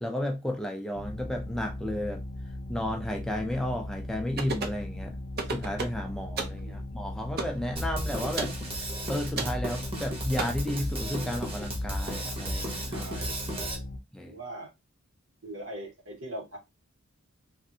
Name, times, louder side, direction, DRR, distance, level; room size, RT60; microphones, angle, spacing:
voice 1, 0.0-2.2 2.7-5.2 5.5-13.1 14.1-14.3, left 1 dB, ahead, 0.4 m, -33 dB
sound 1, 0.9-14.0, left 1 dB, 55° left, 0.5 m, -38 dB
sound 2, 4.4-4.8 5.4-6.0 6.4-6.6 7.4-7.6 8.4-8.6 9.4-9.6 10.4-10.5, right 3 dB, 50° right, 0.6 m, -32 dB
Drum kit, 7.8-13.8, equal, 30° right, 0.9 m, -35 dB
voice 2, 12.8-13.8 14.2-14.7 15.4-16.6, right 1 dB, 75° right, 1.9 m, -41 dB
3.2 x 2.5 x 2.7 m
head